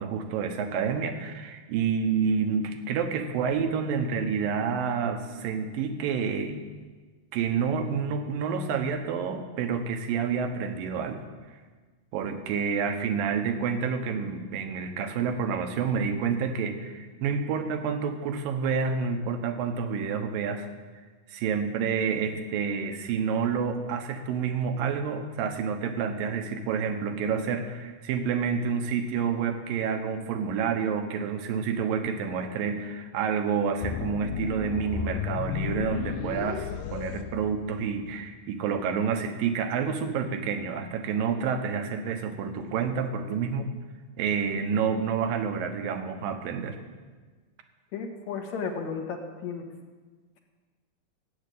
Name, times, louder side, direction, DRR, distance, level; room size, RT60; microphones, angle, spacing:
voice 1, 0.0-6.6 7.3-11.2 12.1-20.7 21.3-43.7 44.2-46.8, right 6 dB, 75° right, 6 dB, 2.9 m, -29 dB
sound 1, 33.8-38.1, left 9 dB, 85° left, 1.6 m, -33 dB
voice 2, 47.9-49.7, left 5 dB, 60° left, 3 dB, 2.6 m, -34 dB
15.5 x 8.9 x 8.5 m, 1.4 s
omnidirectional pair, 4.1 m